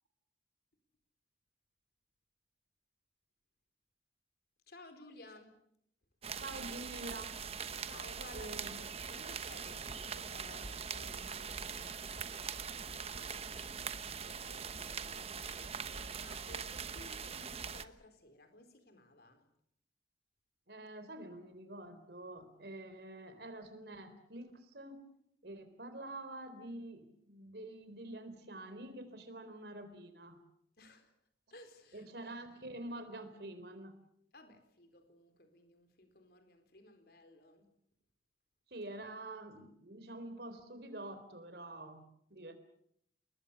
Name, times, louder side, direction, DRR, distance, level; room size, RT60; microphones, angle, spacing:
voice 1, 4.7-5.6 7.8-19.4 30.8-31.1 31.5-32.1 34.3-37.7, left 2 dB, 60° left, 4.3 m, -57 dB
sound 1, 6.2-17.8, right 6 dB, 35° right, 1.1 m, -42 dB
voice 2, 6.4-7.4 8.3-8.7 20.7-25.1 25.4-30.4 31.9-34.0 38.7-42.1 42.3-42.5, right 1 dB, 60° right, 3.9 m, -47 dB
28.5 x 21.5 x 7.2 m
head